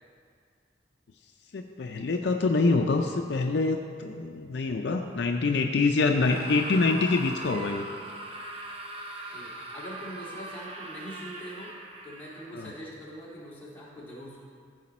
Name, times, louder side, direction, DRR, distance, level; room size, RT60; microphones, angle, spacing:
voice 1, 1.5-7.8 12.5-12.7, left 3 dB, 65° left, 4 dB, 0.5 m, -25 dB
Screaming, 6.1-12.6, right 1 dB, 30° right, 0.8 m, -41 dB
voice 2, 9.3-11.7 12.0-14.4, equal, 10° left, -8 dB, 2.4 m, -43 dB
14.5 x 5.0 x 4.2 m, 2.2 s
head